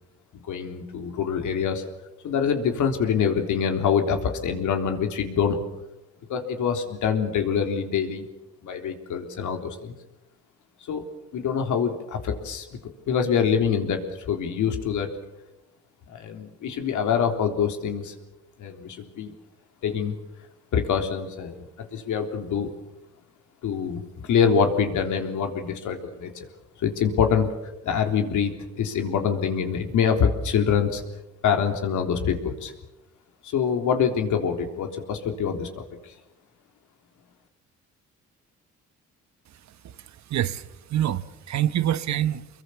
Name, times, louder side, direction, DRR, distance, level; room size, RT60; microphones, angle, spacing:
voice 1, 0.5-1.8 2.2-5.6 6.3-8.2 8.6-9.9 10.9-12.7 13.1-15.1 16.1-18.1 18.6-19.3 19.8-20.1 20.7-22.7 23.6-26.5 26.8-27.5 27.8-31.0 31.4-32.7 33.4-35.7, left 7 dB, 75° left, 3.6 m, -25 dB
voice 2, 39.7-42.5, right 11 dB, 65° right, 1.2 m, -27 dB
25.5 x 22.5 x 7.1 m
cardioid pair, 90°, 30 cm